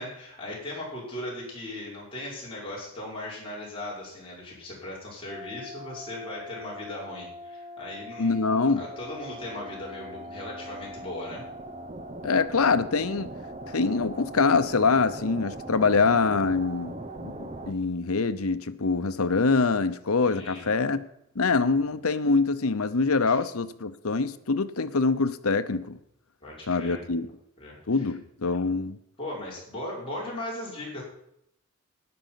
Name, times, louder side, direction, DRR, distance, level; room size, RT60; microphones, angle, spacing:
voice 1, 0.0-11.4 20.2-20.7 21.7-21.8 23.3-23.4 26.4-27.0 27.6-28.1 29.2-31.0, left 1 dB, 25° left, 5.5 m, -38 dB
sound 1, 5.3-17.7, right 1 dB, 30° right, 0.9 m, -41 dB
voice 2, 8.2-8.8 12.2-13.3 13.7-21.0 21.3-26.0 26.7-27.3 27.9-29.0, left 4 dB, 80° left, 0.9 m, -24 dB
12.5 x 10.5 x 5.8 m
head